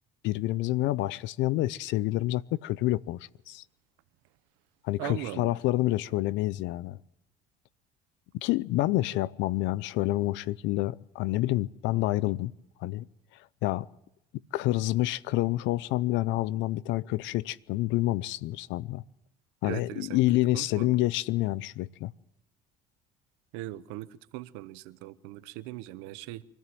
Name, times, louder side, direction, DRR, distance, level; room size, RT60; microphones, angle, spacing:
voice 1, 0.2-3.2 3.5-3.6 4.8-7.0 8.3-12.5 12.8-13.1 13.6-13.8 14.5-19.0 19.6-22.1, left 17 dB, 70° left, 0.7 m, -28 dB
voice 2, 5.0-5.6 19.6-20.2 20.5-21.0 23.5-26.4, right 17 dB, 85° right, 1.0 m, -39 dB
25.0 x 14.5 x 7.7 m
supercardioid pair, 95°, 20 cm